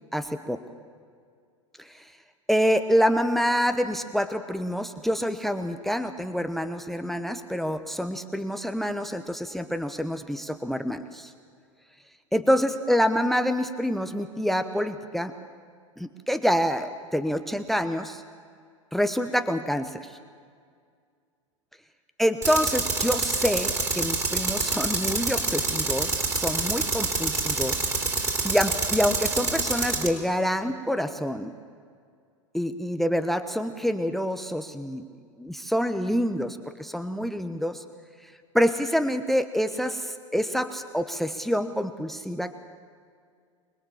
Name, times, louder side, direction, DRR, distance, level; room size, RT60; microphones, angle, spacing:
voice 1, 0.1-0.6 1.8-2.0 2.5-11.3 12.3-15.3 16.0-18.2 18.9-20.2 22.2-27.9 28.4-31.5 32.5-35.0 35.4-37.8 38.2-42.5, equal, ahead, 10 dB, 1.0 m, -27 dB
Tools, 22.4-30.1, right 3 dB, 20° right, 3.7 m, -27 dB
25.5 x 20.5 x 7.3 m, 2.1 s
figure-of-eight pair, 90°, 17 cm